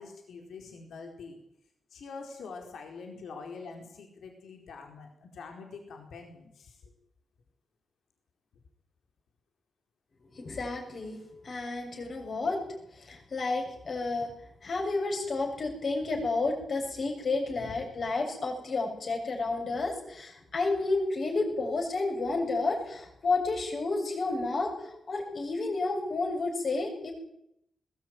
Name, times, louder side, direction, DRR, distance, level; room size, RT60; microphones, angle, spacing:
voice 1, 0.0-1.4 1.9-6.9 17.6-18.1, left 4 dB, 85° left, 3 dB, 4.2 m, -45 dB
voice 2, 10.2-12.6 12.9-14.3 14.6-27.1, left 3 dB, 45° left, 1 dB, 7.3 m, -31 dB
21.0 x 19.0 x 9.4 m, 0.80 s
wide cardioid pair, 165°, 0 cm